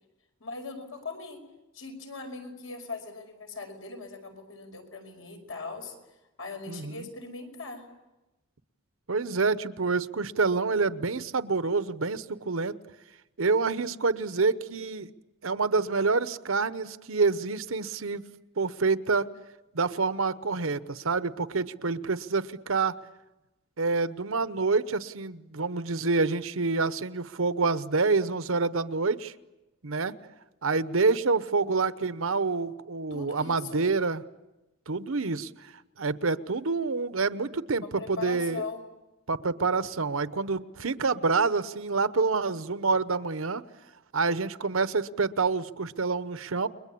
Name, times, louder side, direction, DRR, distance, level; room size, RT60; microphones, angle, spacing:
voice 1, 0.4-1.4 1.7-5.9 6.4-7.8 33.1-33.9 37.8-38.8, left 3 dB, 70° left, 4 dB, 5.3 m, -40 dB
voice 2, 6.7-7.1 9.1-12.8 13.4-15.1 15.4-18.2 18.6-19.3 19.7-22.9 23.8-29.3 29.8-30.1 30.6-34.2 34.9-35.5 36.0-38.6 39.3-43.6 44.1-46.7, right 4 dB, 70° right, 13 dB, 0.9 m, -27 dB
30.0 x 22.0 x 8.5 m, 1.0 s
head